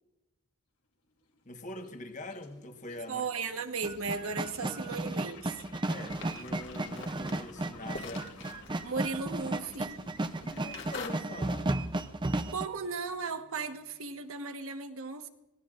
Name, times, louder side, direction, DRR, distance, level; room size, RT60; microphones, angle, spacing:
sound 1, 1.0-14.4, left 3 dB, 90° left, 3.0 m, -55 dB
voice 1, 1.4-3.3 5.9-8.4 10.4-11.8, left 1 dB, 35° left, 6 dB, 1.3 m, -43 dB
voice 2, 3.1-5.5 8.8-10.0 12.5-15.3, right 4 dB, 65° right, 7 dB, 1.2 m, -36 dB
sound 2, 3.8-12.7, right 2 dB, 20° right, 0.5 m, -34 dB
sound 3, 6.1-11.1, left 4 dB, 55° left, 2.0 m, -46 dB
24.5 x 17.5 x 2.5 m, 0.99 s
head